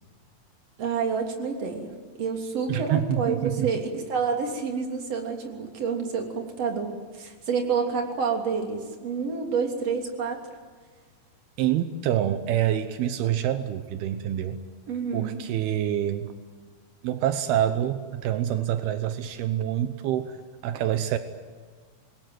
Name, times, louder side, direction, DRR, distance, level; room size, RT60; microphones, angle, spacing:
voice 1, 0.8-1.9 2.2-10.4 14.9-15.4, right 5 dB, 40° right, 2 dB, 4.0 m, -28 dB
voice 2, 2.7-3.7 11.6-14.6 15.1-16.3 17.0-20.4 20.6-21.2, right 11 dB, 85° right, 9 dB, 3.0 m, -26 dB
27.5 x 21.5 x 9.3 m, 1.5 s
omnidirectional pair, 4.4 m